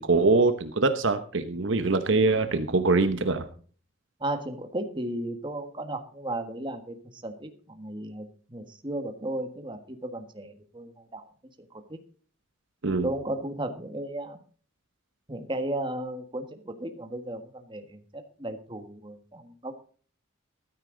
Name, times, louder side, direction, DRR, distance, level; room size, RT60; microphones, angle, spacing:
voice 1, 0.0-3.5 12.8-13.1, right 3 dB, 60° right, 10 dB, 1.0 m, -23 dB
voice 2, 4.2-11.2 11.9-12.0 13.0-14.4 15.3-19.7, right 1 dB, 25° right, 7 dB, 1.5 m, -35 dB
14.5 x 12.5 x 3.9 m, 0.43 s
head